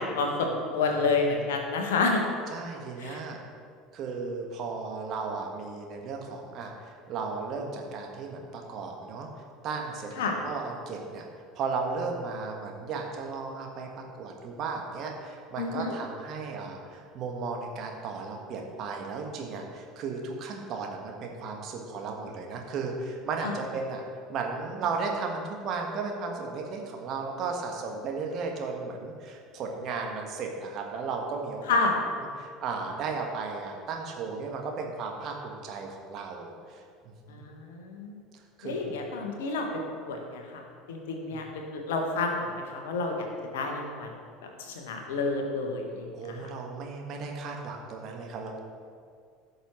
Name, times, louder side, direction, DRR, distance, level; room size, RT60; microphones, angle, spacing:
voice 1, 0.0-2.2 3.0-3.2 10.2-10.3 15.6-15.9 23.4-23.5 31.7-32.0 37.3-38.1 38.6-39.7 40.1-40.6 40.9-43.2 43.5-44.1 44.4-46.5, left 3 dB, 65° left, 2 dB, 1.4 m, -29 dB
voice 2, 2.5-3.4 3.9-9.3 9.6-11.2 11.5-24.0 24.3-31.9 32.4-36.8 37.3-37.5 38.6-38.9 41.3-41.4 46.1-48.6, right 4 dB, 45° right, 1 dB, 1.5 m, -35 dB
16.0 x 6.5 x 3.2 m, 2.2 s
figure-of-eight pair, 65°, 0 cm